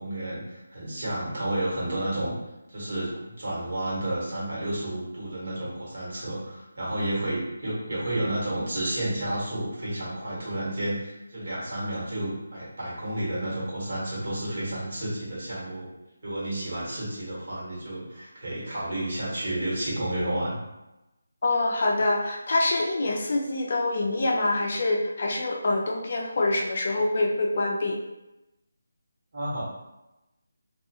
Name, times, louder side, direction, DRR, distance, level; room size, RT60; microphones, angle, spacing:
voice 1, 0.0-2.3 2.7-15.9 16.2-20.6 29.3-29.6, right 1 dB, 55° right, -6 dB, 1.3 m, -31 dB
voice 2, 21.4-28.0, left 2 dB, 45° left, 0 dB, 0.4 m, -25 dB
2.5 x 2.3 x 2.6 m, 0.96 s
figure-of-eight pair, 170°, 0 cm